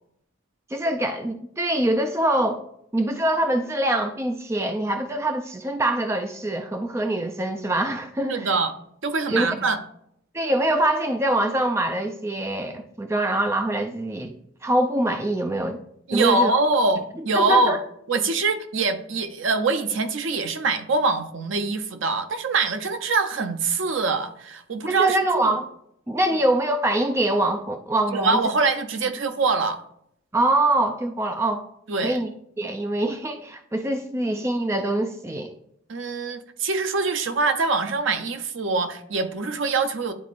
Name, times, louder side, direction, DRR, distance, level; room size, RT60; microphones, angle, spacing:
voice 1, 0.7-2.6 2.9-8.5 9.3-9.5 10.3-14.3 14.6-15.8 16.1-16.5 17.3-17.8 25.0-25.7 26.1-28.4 30.3-31.6 32.0-32.3 32.6-35.5, right 1 dB, 15° right, 6 dB, 0.4 m, -24 dB
voice 2, 8.3-8.7 9.0-9.8 16.1-17.8 18.1-25.6 28.1-29.8 31.9-32.2 35.9-40.1, right 3 dB, 70° right, 8 dB, 0.6 m, -24 dB
11.0 x 4.1 x 2.5 m, 0.74 s
head